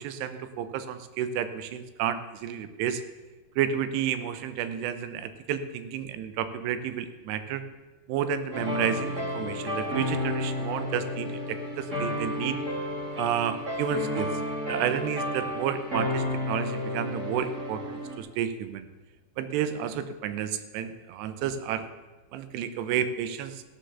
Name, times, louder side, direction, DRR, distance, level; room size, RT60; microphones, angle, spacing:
voice 1, 0.0-3.0 3.6-7.6 8.1-12.6 13.2-14.4 14.7-18.9 19.4-21.9 22.3-23.6, right 9 dB, 75° right, 11 dB, 2.7 m, -31 dB
sound 1, 8.5-18.2, left 1 dB, 35° right, 1.2 m, -32 dB
15.0 x 6.8 x 6.9 m, 1.2 s
omnidirectional pair, 5.2 m